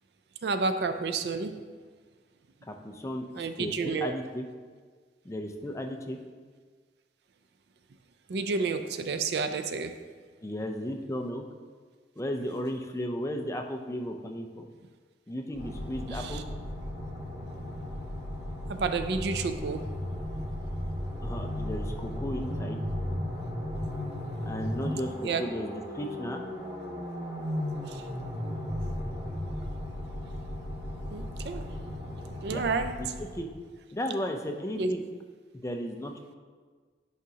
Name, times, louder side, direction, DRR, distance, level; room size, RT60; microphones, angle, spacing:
voice 1, 0.4-1.6 3.3-4.1 8.3-10.0 16.1-16.4 18.7-19.9 23.8-23.9 25.2-25.4 27.9-28.1 31.1-31.7 32.4-32.9 34.8-34.9, right 4 dB, 65° right, 9 dB, 0.4 m, -30 dB
voice 2, 2.7-4.5 5.2-6.2 10.4-11.4 12.2-14.7 15.3-16.4 21.2-22.8 24.5-26.4 32.5-32.6 33.0-33.1 33.3-33.5 33.9-35.0 35.6-36.1, equal, 15° left, 3 dB, 0.4 m, -35 dB
sound 1, 15.5-33.6, left 1 dB, 35° right, 2.1 m, -35 dB
9.9 x 4.9 x 2.8 m, 1.5 s
head